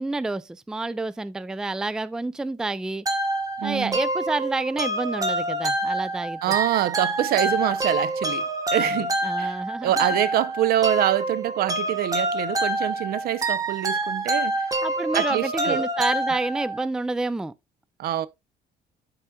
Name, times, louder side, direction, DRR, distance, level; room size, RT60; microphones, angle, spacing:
voice 1, 0.0-3.0 3.6-6.6 8.8-8.9 9.2-10.0 14.8-17.5, right 2 dB, 5° right, 0.3 m, -29 dB
sound 1, 3.1-16.9, right 1 dB, 20° right, 1.3 m, -27 dB
voice 2, 3.6-4.0 6.4-8.4 8.7-9.5 9.8-14.5 15.1-15.9 18.0-18.3, right 12 dB, 65° right, 0.6 m, -25 dB
12.5 x 4.9 x 2.3 m
cardioid pair, 110°, 17 cm